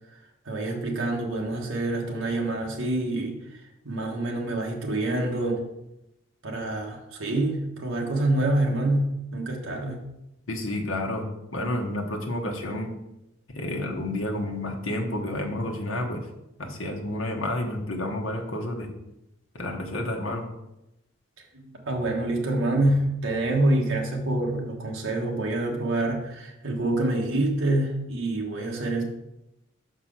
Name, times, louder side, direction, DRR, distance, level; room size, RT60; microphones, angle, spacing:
voice 1, 0.5-3.6 3.8-5.6 6.4-10.0 21.5-29.0, right 2 dB, 70° right, 0 dB, 1.3 m, -26 dB
voice 2, 10.5-11.3 11.5-12.9 13.5-16.2 16.6-18.9 19.5-20.4, left 1 dB, 70° left, 1 dB, 1.2 m, -30 dB
5.9 x 4.6 x 6.1 m, 0.88 s
head